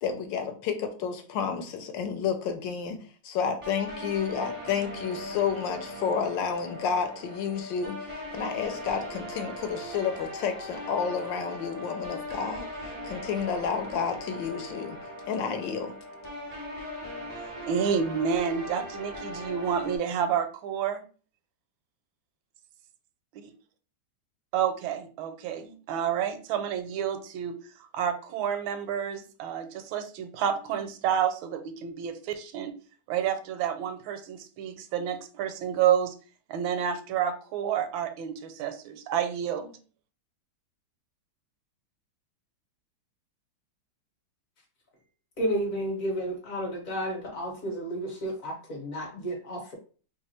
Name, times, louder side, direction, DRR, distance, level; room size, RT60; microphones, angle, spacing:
voice 1, 0.0-3.0 3.2-15.0 15.3-15.9, left 6 dB, 75° left, 6 dB, 1.2 m, -30 dB
sound 1, 3.6-20.0, left 1 dB, 30° right, 0.6 m, -39 dB
voice 2, 17.7-21.0 23.4-23.5 24.5-27.5 27.9-32.7 33.1-36.1 36.5-39.8, right 8 dB, 80° right, 9 dB, 1.3 m, -29 dB
voice 3, 45.4-49.7, equal, 50° left, 0 dB, 1.2 m, -32 dB
3.2 x 2.4 x 4.2 m, 0.39 s
omnidirectional pair, 2.1 m